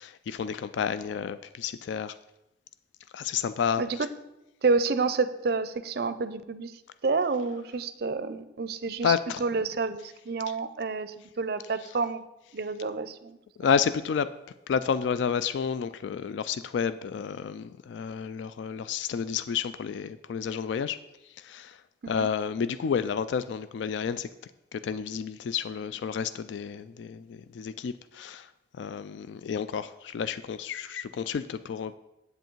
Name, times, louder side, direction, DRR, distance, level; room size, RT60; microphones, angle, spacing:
voice 1, 0.0-2.2 3.1-4.1 9.0-9.5 13.6-14.3 14.7-21.8 22.1-24.3 24.7-32.0, left 7 dB, 75° left, 13 dB, 0.3 m, -30 dB
voice 2, 3.8-4.1 4.6-6.7 7.0-9.1 9.4-12.2 12.5-13.4 22.0-22.3, right 4 dB, 55° right, 13 dB, 0.5 m, -29 dB
7.9 x 7.8 x 4.6 m, 0.92 s
head